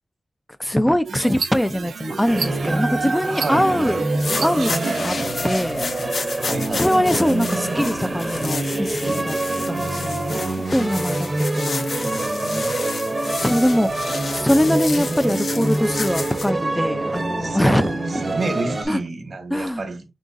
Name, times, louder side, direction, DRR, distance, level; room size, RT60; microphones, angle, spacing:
voice 1, 0.6-4.0 4.4-5.2 5.4-5.8 6.8-9.4 9.7-11.3 11.5-11.9 13.4-17.9 18.9-19.0 19.5-19.9, equal, 10° left, 0.3 m, -22 dB
sound 1, 1.1-5.1, right 5 dB, 80° right, 0.4 m, -31 dB
sound 2, 2.3-18.9, right 2 dB, 30° right, 0.8 m, -25 dB
voice 2, 3.2-3.9 6.4-7.0 14.2-14.5 17.4-20.0, right 2 dB, 65° right, 1.2 m, -29 dB
sound 3, 4.0-16.5, left 4 dB, 65° left, 0.7 m, -32 dB
3.9 x 3.7 x 2.5 m
cardioid pair, 75°, 0 cm